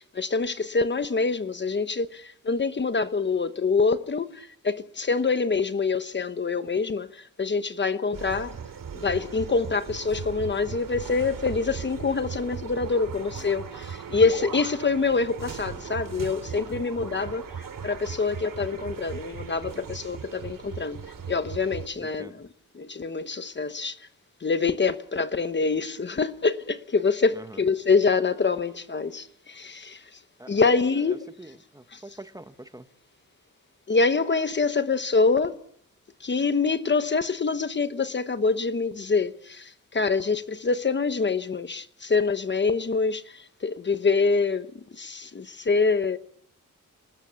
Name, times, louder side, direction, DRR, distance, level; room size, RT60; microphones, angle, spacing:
voice 1, 0.0-8.5 8.9-21.0 21.3-22.5 22.7-24.0 24.4-30.0 30.5-31.2 31.9-32.0 33.9-35.6 36.2-46.2, left 4 dB, 35° left, 1.0 m, -25 dB
sound 1, 8.1-21.9, right 7 dB, 85° right, 2.9 m, -38 dB
voice 2, 22.0-22.4 27.3-27.6 30.4-30.6 30.9-32.9, right 1 dB, 10° right, 1.1 m, -45 dB
29.5 x 20.0 x 7.0 m
wide cardioid pair, 180°, 32 cm